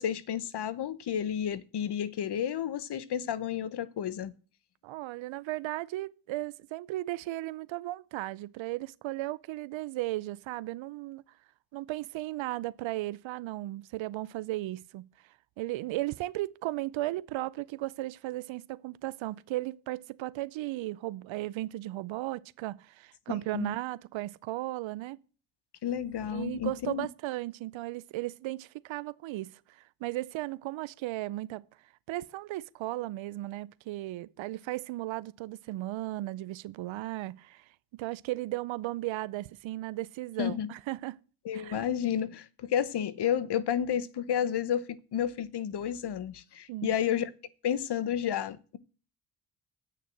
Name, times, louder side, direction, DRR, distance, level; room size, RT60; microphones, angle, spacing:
voice 1, 0.0-4.3 23.3-23.7 25.8-27.1 40.4-40.7 41.4-47.3 47.6-48.8, left 9 dB, 55° left, 1.0 m, -31 dB
voice 2, 4.8-11.2 11.7-15.1 15.6-25.2 26.3-31.6 32.1-41.2 41.5-41.9 46.7-47.0, right 17 dB, 75° right, 0.6 m, -36 dB
8.4 x 6.6 x 7.7 m
supercardioid pair, 55°, 47 cm